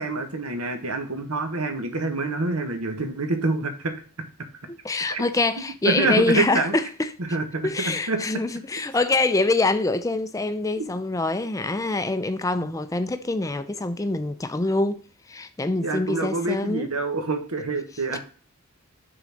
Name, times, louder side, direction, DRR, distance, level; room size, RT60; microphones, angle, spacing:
voice 1, 0.0-3.9 5.1-5.2 5.8-6.7 7.3-8.2 10.8-10.9 12.6-12.7 15.8-18.2, right 3 dB, 85° right, 1.4 m, -26 dB
voice 2, 4.7-7.1 7.6-15.0 15.3-16.9 18.1-18.2, left 2 dB, 15° left, 0.4 m, -25 dB
6.4 x 4.0 x 6.3 m
head